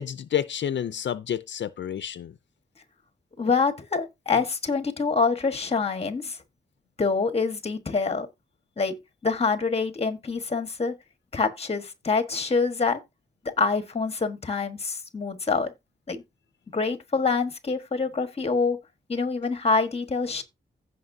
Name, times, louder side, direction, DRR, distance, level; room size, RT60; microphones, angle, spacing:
voice 1, 0.0-2.3, left 9 dB, 75° left, 0.5 m, -29 dB
voice 2, 3.4-6.4 7.0-8.3 8.8-8.9 9.2-10.9 11.3-13.0 13.6-15.7 16.1-16.2 16.7-18.8 19.1-20.4, left 4 dB, 30° left, 1.4 m, -26 dB
15.5 x 5.4 x 2.7 m
wide cardioid pair, 130°, 19 cm